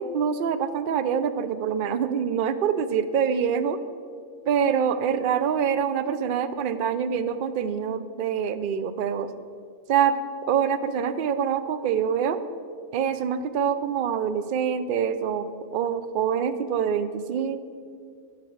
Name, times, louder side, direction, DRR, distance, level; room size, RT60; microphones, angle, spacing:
voice 1, 0.0-3.8 4.5-9.3 9.9-10.2 10.5-12.4 12.9-17.6, right 7 dB, 60° right, 12 dB, 0.6 m, -25 dB
13.5 x 5.1 x 7.9 m, 2.3 s
omnidirectional pair, 1.5 m